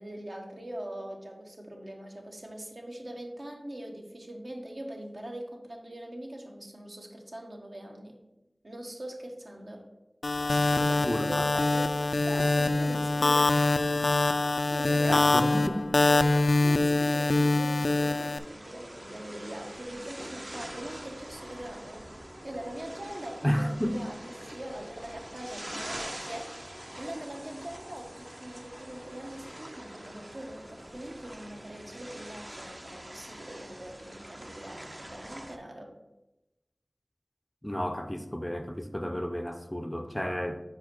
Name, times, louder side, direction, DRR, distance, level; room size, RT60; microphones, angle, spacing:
voice 1, 0.0-8.2 8.6-9.9 10.4-13.6 14.7-16.3 16.6-22.0 22.4-26.6 27.0-35.9, right 1 dB, 55° right, 1 dB, 1.2 m, -42 dB
sound 1, 10.2-18.4, left 2 dB, 80° left, 0.3 m, -24 dB
voice 2, 11.0-11.5 15.1-15.8 23.4-24.0 37.6-40.6, equal, 15° left, 7 dB, 0.5 m, -31 dB
sound 2, 17.8-35.6, right 1 dB, 30° right, 0.7 m, -44 dB
4.7 x 4.5 x 5.9 m, 0.97 s
wide cardioid pair, 45°, 0 cm